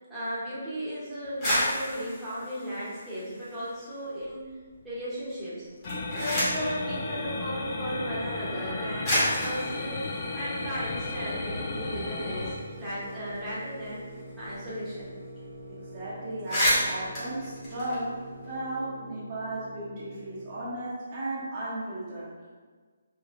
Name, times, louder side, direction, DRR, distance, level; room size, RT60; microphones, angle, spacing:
voice 1, 0.1-4.5 4.8-5.6 6.1-14.0 14.4-15.1, equal, ahead, -13 dB, 1.0 m, -35 dB
sound 1, 1.2-3.8 4.2-4.9 5.7-6.7 7.8-7.9 8.6-8.7 9.0-11.3 11.7-11.8 12.1-14.7 14.9-15.1 15.4-15.6 16.0-16.1 16.3-18.5, equal, 20° left, 1.5 m, -31 dB
sound 2, 5.8-12.5, left 2 dB, 40° left, 0.5 m, -34 dB
sound 3, 6.3-20.8, right 1 dB, 75° right, 0.6 m, -45 dB
voice 2, 15.7-18.1 18.5-22.3, right 1 dB, 30° right, -8 dB, 0.7 m, -35 dB
4.2 x 2.9 x 2.5 m, 1.4 s
hypercardioid pair, 165°, 0 cm